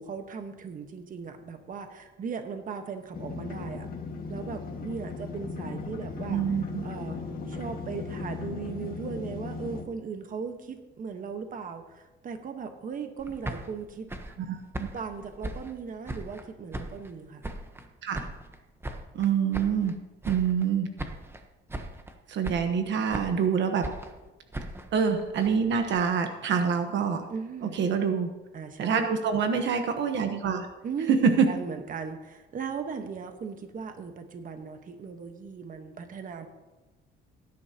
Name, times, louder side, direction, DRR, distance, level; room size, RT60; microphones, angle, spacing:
voice 1, 0.0-3.9 4.3-6.6 6.8-7.2 7.5-14.1 14.9-17.4 27.3-27.8 28.5-29.1 30.8-36.5, right 5 dB, 40° right, 6 dB, 1.3 m, -38 dB
Excavator Right To Left Short, 3.1-9.8, left 4 dB, 45° left, 1.8 m, -37 dB
voice 2, 6.3-6.8 14.4-14.9 18.0-18.3 19.1-20.0 20.3-20.9 22.3-23.9 24.9-27.3 27.6-28.3 28.8-30.7 31.1-31.5, right 6 dB, 65° right, 6 dB, 1.1 m, -26 dB
sound 1, 13.2-16.5 16.7-17.9 18.1-20.0 20.2-20.7 21.0-21.4 21.7-22.1 22.4-23.5 23.8-26.0, right 1 dB, 10° right, 1.0 m, -39 dB
17.5 x 10.5 x 2.9 m, 1.1 s
cardioid pair, 125°, 20 cm